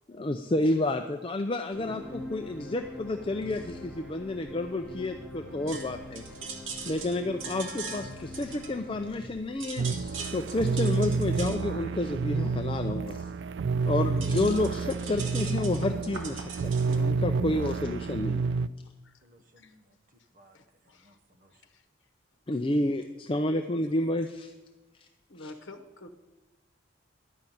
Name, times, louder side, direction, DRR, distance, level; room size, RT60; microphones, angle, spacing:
voice 1, 0.1-6.2 6.9-13.3 13.8-18.4 22.5-24.5 25.0-25.1 25.4-25.5, left 2 dB, 25° left, 6 dB, 0.4 m, -30 dB
sound 1, 1.7-10.2, left 2 dB, 5° right, 2.8 m, -44 dB
sound 2, 5.7-9.2 9.5-17.0, right 4 dB, 80° right, 1.7 m, -41 dB
sound 3, 9.8-18.7, right 4 dB, 60° right, 0.3 m, -29 dB
voice 2, 10.5-10.9 19.2-20.6 20.8-21.7, equal, 40° right, 7 dB, 0.9 m, -58 dB
voice 3, 20.5-21.2 21.5-22.1 23.8-23.9 25.3-26.2, left 2 dB, 65° left, 6 dB, 1.0 m, -49 dB
12.0 x 5.7 x 9.1 m, 1.1 s
head